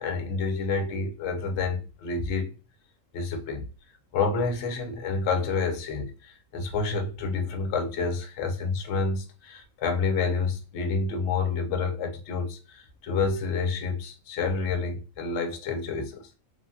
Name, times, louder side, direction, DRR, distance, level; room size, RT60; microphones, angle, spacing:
voice 1, 0.0-2.5 3.1-3.7 4.1-16.3, left 4 dB, 60° left, 0.8 m, -29 dB
3.2 x 2.2 x 2.6 m
omnidirectional pair, 1.4 m